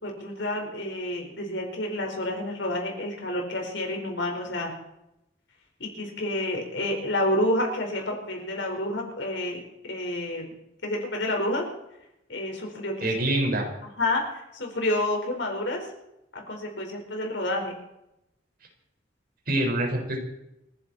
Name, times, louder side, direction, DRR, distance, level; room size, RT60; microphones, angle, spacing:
voice 1, 0.0-4.7 5.8-10.4 10.8-11.7 12.3-13.1 14.0-15.9 16.3-17.7, left 1 dB, 70° left, 1 dB, 4.7 m, -29 dB
voice 2, 13.0-13.7 19.5-20.2, right 1 dB, 50° right, 1 dB, 5.0 m, -25 dB
29.5 x 11.0 x 4.4 m, 0.85 s
head